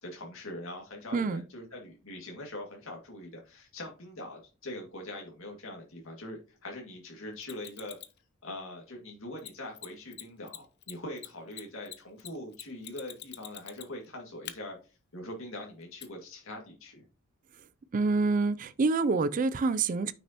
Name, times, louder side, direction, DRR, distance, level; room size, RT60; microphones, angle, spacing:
voice 1, 0.0-8.0 8.4-14.8 15.1-17.0, left 1 dB, 80° left, 2.1 m, -42 dB
voice 2, 1.1-1.4 17.9-20.1, right 3 dB, 40° right, 0.4 m, -27 dB
Mechanisms, 7.4-8.2 9.4-9.5 9.8-9.9 10.1-10.2 10.5-14.1 14.5-14.6 16.0-16.1, left 12 dB, 55° left, 0.7 m, -44 dB
9.1 x 6.3 x 2.9 m
head